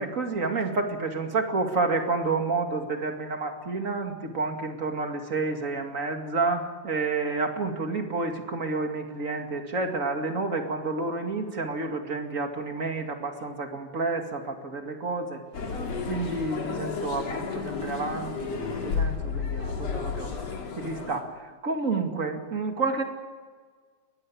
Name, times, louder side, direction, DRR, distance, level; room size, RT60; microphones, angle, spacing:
voice 1, 0.0-15.4 16.1-20.3 20.8-23.0, right 3 dB, 30° right, 4 dB, 2.2 m, -30 dB
sound 1, 15.5-21.2, left 5 dB, 60° left, 3.7 m, -32 dB
22.0 x 18.0 x 8.6 m, 1.5 s
omnidirectional pair, 3.4 m